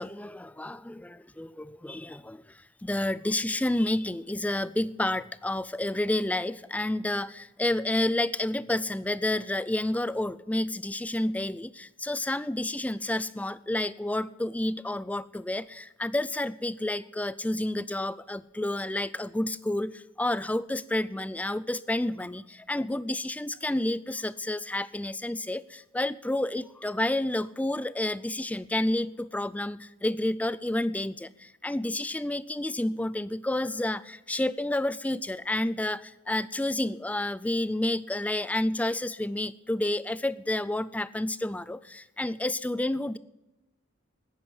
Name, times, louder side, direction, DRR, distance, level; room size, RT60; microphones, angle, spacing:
voice 1, 0.0-2.4 2.8-43.2, left 1 dB, 5° left, 17 dB, 0.4 m, -30 dB
10.0 x 9.8 x 9.8 m, 0.97 s
head